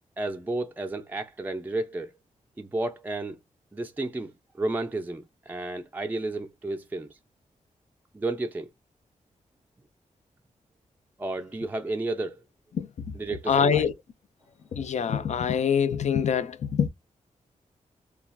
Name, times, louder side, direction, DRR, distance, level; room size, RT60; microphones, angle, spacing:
voice 1, 0.2-2.1 2.6-3.4 3.7-7.2 8.1-8.7 11.2-12.4 13.1-13.9, right 2 dB, 15° right, 0.4 m, -32 dB
voice 2, 13.5-13.9 14.8-16.9, left 7 dB, 60° left, 0.4 m, -24 dB
3.3 x 2.3 x 2.3 m
cardioid pair, 80°, 13 cm